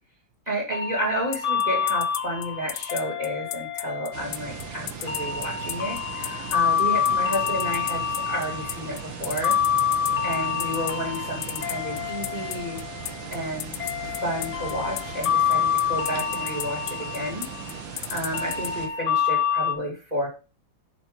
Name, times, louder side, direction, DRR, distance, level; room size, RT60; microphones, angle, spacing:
voice 1, 0.5-9.5 10.2-12.8 13.3-13.8 14.2-17.5 17.9-20.3, equal, 20° right, 0 dB, 2.8 m, -31 dB
sound 1, 0.7-19.7, left 8 dB, 40° left, 1.7 m, -28 dB
sound 2, 1.3-18.7, left 14 dB, 85° left, 1.4 m, -33 dB
sound 3, 4.1-18.9, right 6 dB, 70° right, 1.9 m, -38 dB
9.8 x 5.1 x 5.3 m, 0.32 s
omnidirectional pair, 2.2 m